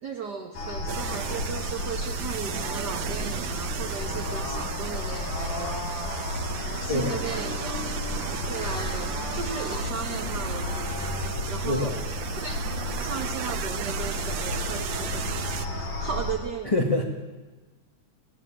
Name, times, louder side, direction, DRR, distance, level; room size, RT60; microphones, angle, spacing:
voice 1, 0.0-5.9 6.7-7.9 8.4-11.2 11.5-12.0 12.4-12.6 13.0-15.5 15.8-16.7, right 5 dB, 40° right, 4 dB, 1.7 m, -36 dB
sound 1, 0.5-16.3, left 1 dB, 85° left, 6.0 m, -32 dB
sound 2, 0.9-15.7, right 11 dB, 70° right, 1.9 m, -36 dB
voice 2, 11.6-12.0 16.6-17.0, left 2 dB, 15° left, 0 dB, 1.7 m, -25 dB
26.0 x 17.0 x 9.0 m, 1.3 s
omnidirectional pair, 3.5 m